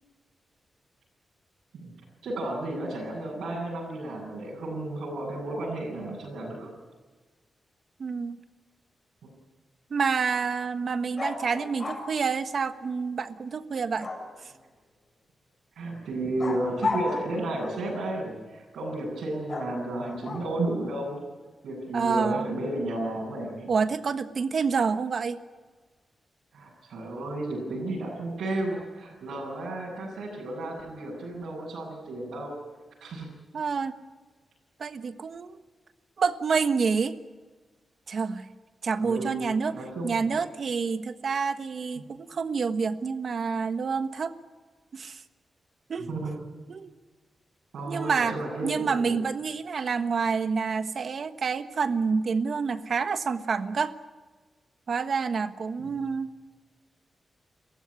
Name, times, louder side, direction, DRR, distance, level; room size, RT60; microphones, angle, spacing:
voice 1, 2.2-6.7 15.7-21.2 21.6-23.7 26.5-32.5 33.0-33.3 39.0-40.2 46.0-46.5 47.7-49.2 55.8-56.0, right 1 dB, 85° right, -6 dB, 7.8 m, -33 dB
voice 2, 8.0-8.4 9.9-14.1 21.9-22.5 23.7-25.4 33.5-34.0 34.8-35.6 36.2-37.1 38.1-38.4 38.8-39.8 40.0-44.3 44.9-45.2 45.9-46.1 46.7-46.9 47.9-48.3 48.6-53.9 54.9-56.3, right 5 dB, 60° right, 9 dB, 1.4 m, -28 dB
sound 1, 11.1-12.1 14.0-14.6 16.4-17.9 19.5-20.7, left 3 dB, 30° left, 7.7 m, -34 dB
30.0 x 15.5 x 9.8 m, 1.3 s
cardioid pair, 85°, 0 cm